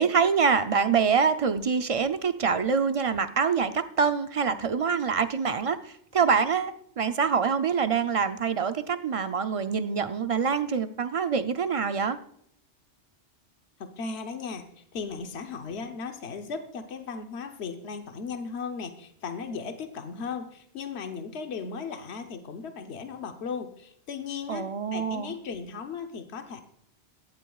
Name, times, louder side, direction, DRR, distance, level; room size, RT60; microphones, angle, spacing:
voice 1, 0.0-5.8 6.1-12.2 24.5-25.3, right 6 dB, 45° right, 10 dB, 0.5 m, -25 dB
voice 2, 13.8-26.6, left 5 dB, 70° left, 6 dB, 1.2 m, -36 dB
17.5 x 12.0 x 2.4 m, 0.70 s
omnidirectional pair, 1.2 m